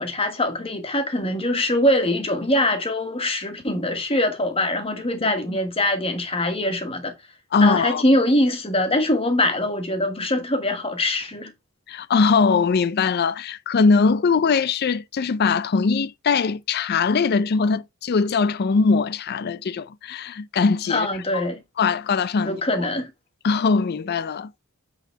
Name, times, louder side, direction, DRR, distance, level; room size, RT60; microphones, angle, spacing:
voice 1, 0.0-7.1 7.6-11.5 20.9-21.6 22.4-23.1, left 1 dB, 25° left, 1.5 m, -23 dB
voice 2, 5.2-5.6 7.5-8.0 11.9-21.1 21.3-21.4 21.8-22.6 23.4-24.6, left 4 dB, 50° left, 0.4 m, -21 dB
8.2 x 3.9 x 4.5 m
head